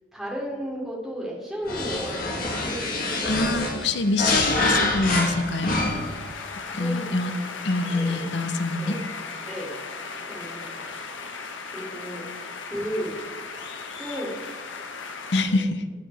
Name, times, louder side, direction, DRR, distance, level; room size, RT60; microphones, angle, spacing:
voice 1, 0.1-3.7 4.7-4.9 6.7-8.3 8.8-9.0 9.5-9.7 10.2-11.0 11.4-13.1 14.0-14.6 15.5-15.6, equal, ahead, -4 dB, 2.8 m, -35 dB
sound 1, 1.7-6.2, left 2 dB, 50° left, 2.3 m, -26 dB
voice 2, 3.3-5.7 6.7-7.3 7.6-9.0 12.2-12.4 15.3-15.8, left 2 dB, 65° left, 10 dB, 0.8 m, -25 dB
sound 2, 4.8-15.4, left 4 dB, 85° left, 1.2 m, -37 dB
13.5 x 8.3 x 3.5 m, 1.4 s
head